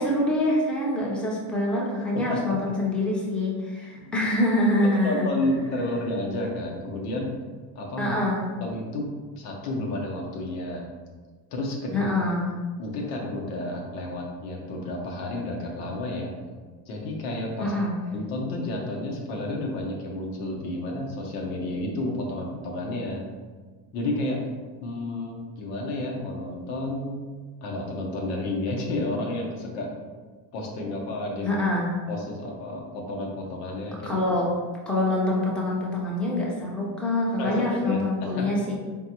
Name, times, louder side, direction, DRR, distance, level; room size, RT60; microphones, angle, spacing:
voice 1, 0.0-5.3 8.0-8.5 11.9-12.5 17.6-17.9 31.4-31.9 34.0-34.5 34.9-38.7, left 1 dB, ahead, -4 dB, 0.6 m, -25 dB
voice 2, 2.1-2.6 4.0-4.1 5.0-7.3 7.7-8.1 8.6-10.9 11.5-12.1 12.8-16.3 16.9-17.7 18.1-23.2 23.9-24.4 24.8-27.3 27.6-29.9 30.5-31.6 32.1-34.2 37.4-38.5, left 1 dB, 90° left, 0 dB, 1.1 m, -31 dB
3.9 x 3.5 x 2.9 m, 1.4 s
cardioid pair, 120°, 48 cm